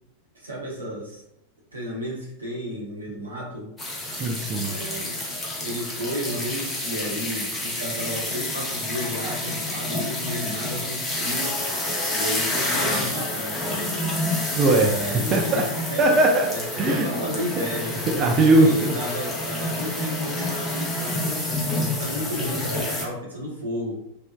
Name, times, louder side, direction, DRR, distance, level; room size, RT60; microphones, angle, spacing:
voice 1, 0.3-1.2 1.7-3.7 4.6-5.2 5.5-13.8 14.8-16.1 16.5-18.0 18.5-24.0, equal, 80° right, -4 dB, 0.9 m, -33 dB
sound 1, 3.8-23.0, left 1 dB, 15° left, 0.6 m, -28 dB
voice 2, 4.1-4.7 14.5-15.6 16.0-16.5 16.8-17.1 18.1-18.9, right 2 dB, 30° right, 1 dB, 0.3 m, -19 dB
3.0 x 2.0 x 2.3 m, 0.77 s
figure-of-eight pair, 90°, 0 cm